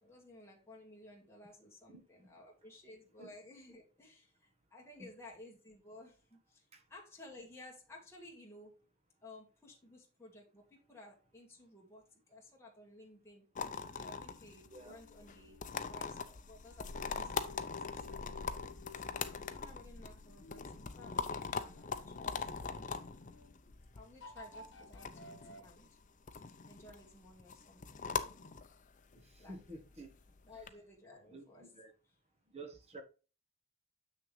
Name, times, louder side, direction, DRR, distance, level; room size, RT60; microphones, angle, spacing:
voice 1, 0.0-8.8 9.2-13.5 13.9-15.6 15.9-18.6 18.9-19.0 19.5-22.9 23.9-25.9 26.3-28.1 29.4-29.5 30.5-31.7, left 1 dB, 15° left, 2.1 m, -56 dB
voice 2, 1.9-2.3 3.2-3.3 5.0-5.1 6.7-6.8 14.7-15.0 29.1-30.1 31.3-31.9 32.5-33.0, right 2 dB, 30° right, 1.2 m, -51 dB
sound 1, 13.6-30.7, left 5 dB, 40° left, 0.6 m, -42 dB
sound 2, 14.6-15.9 16.7-19.6 20.2-23.5 24.2-25.6, left 3 dB, 60° left, 1.6 m, -56 dB
7.1 x 6.4 x 3.2 m
head